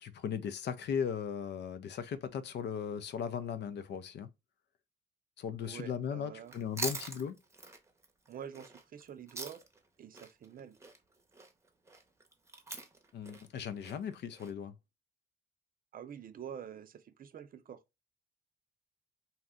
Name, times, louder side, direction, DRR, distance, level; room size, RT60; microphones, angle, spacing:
voice 1, 0.0-4.3 5.4-7.4 13.1-14.7, left 7 dB, 60° left, 0.5 m, -37 dB
voice 2, 5.6-6.5 8.3-9.6 10.0-10.8 15.9-17.8, right 8 dB, 45° right, 0.5 m, -47 dB
Chewing mastication, 6.4-9.9 10.1-14.5, right 2 dB, 15° right, 0.7 m, -44 dB
2.7 x 2.2 x 3.5 m
cardioid pair, 90°, 20 cm